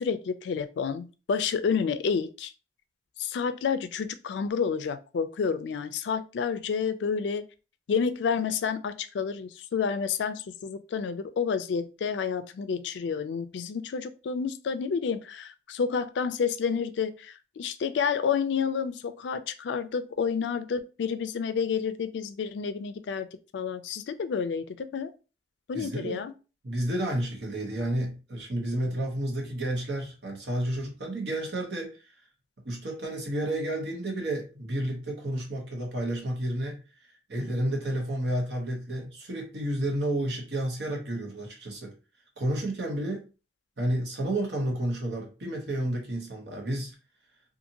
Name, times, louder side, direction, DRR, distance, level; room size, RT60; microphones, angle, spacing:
voice 1, 0.0-2.5 3.2-7.4 7.9-23.3 23.5-25.1 25.7-26.3, left 6 dB, 80° left, 11 dB, 0.3 m, -29 dB
voice 2, 25.7-26.2 26.6-32.0 32.6-36.8 37.3-41.9 42.4-43.2 43.8-46.9, right 1 dB, 70° right, 0 dB, 1.0 m, -31 dB
2.6 x 2.5 x 2.8 m, 0.33 s
head